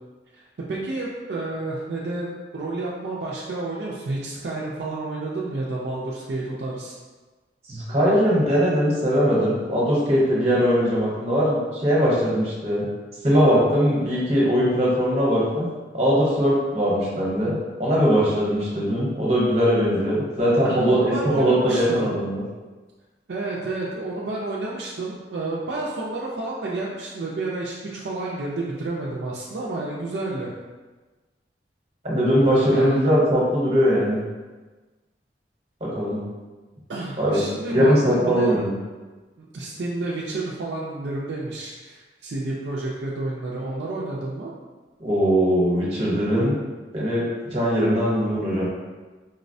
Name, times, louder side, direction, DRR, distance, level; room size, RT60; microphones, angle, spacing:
voice 1, 0.7-7.0 20.6-22.2 23.3-30.5 32.7-33.0 36.9-38.5 39.4-44.5, right 2 dB, 70° right, -5 dB, 0.4 m, -30 dB
voice 2, 7.7-12.9 13.2-15.7 15.9-17.5 17.8-22.4 32.0-34.2 35.8-36.2 37.2-37.4 37.7-38.7 45.0-46.6 46.9-47.2 47.5-48.7, equal, 35° right, -6 dB, 0.9 m, -20 dB
4.0 x 2.1 x 2.6 m, 1.3 s
head